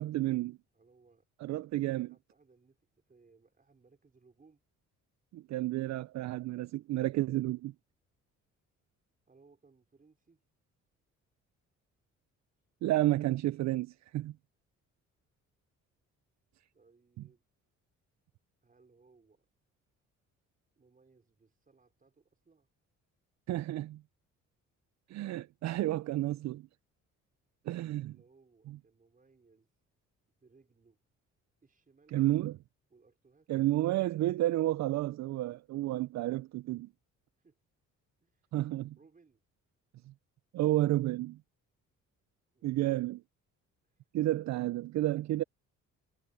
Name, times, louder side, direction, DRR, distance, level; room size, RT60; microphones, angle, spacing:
voice 1, 0.0-0.6 1.4-2.1 5.3-7.7 12.8-14.3 23.5-24.0 25.1-26.7 27.7-28.1 28.7-28.8 32.1-32.6 33.5-36.9 38.5-39.0 40.5-41.4 42.6-43.2 44.1-45.4, right 15 dB, 65° right, 0.5 m, -31 dB
voice 2, 0.7-1.2 1.9-4.6 9.3-10.4 16.7-17.4 18.6-19.5 20.7-22.7 27.9-29.7 30.4-31.0 31.6-32.2 32.9-33.5 37.4-37.6 38.2-38.5 39.0-39.4 42.5-42.7 43.8-44.0, right 4 dB, 30° right, 4.7 m, -65 dB
cardioid pair, 90°, 30 cm